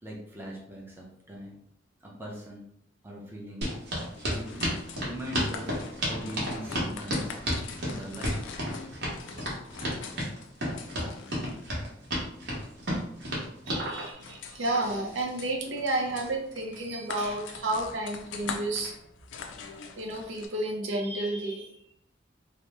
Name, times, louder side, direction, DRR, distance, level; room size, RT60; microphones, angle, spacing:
voice 1, 0.0-1.6 2.0-2.7 3.0-3.7 4.2-4.6 5.0-5.7 6.0-7.4 7.8-8.4 10.7-10.8 17.2-17.3, equal, 10° right, -3 dB, 0.6 m, -41 dB
sound 1, 3.6-13.8, equal, 60° right, 1.0 m, -31 dB
sound 2, 4.0-20.5, left 5 dB, 75° left, 0.4 m, -44 dB
voice 2, 13.7-18.9 20.0-21.9, right 2 dB, 85° right, 1 dB, 0.6 m, -31 dB
2.8 x 2.0 x 3.2 m, 0.71 s
head